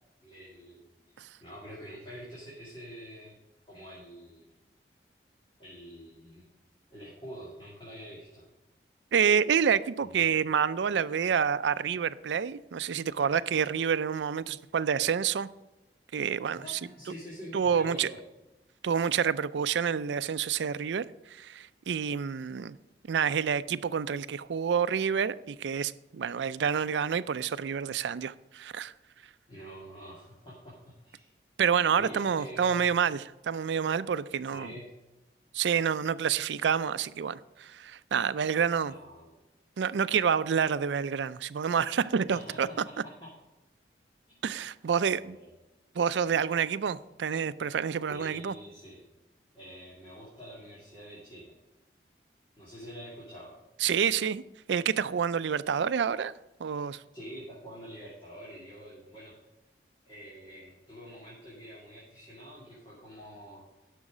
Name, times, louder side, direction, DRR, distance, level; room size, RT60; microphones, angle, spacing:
voice 1, 0.2-1.1 1.4-3.4 3.6-4.5 5.6-6.5 6.9-8.4 10.0-10.3 16.5-18.2 29.5-31.3 31.9-32.9 34.4-35.0 38.8-39.3 42.3-42.9 43.2-43.3 44.3-44.4 44.8-45.5 48.1-49.0 49.5-51.6 52.6-53.5 57.1-59.3 60.0-63.6, equal, 30° left, 2.6 m, -46 dB
voice 2, 9.1-15.5 16.1-16.8 17.5-18.1 18.8-22.8 23.1-28.9 31.6-34.7 35.5-38.9 39.8-42.7 44.4-45.4 46.0-48.5 53.8-54.4 54.7-56.3 56.6-57.0, right 7 dB, 85° right, 0.4 m, -28 dB
11.0 x 6.4 x 5.0 m
head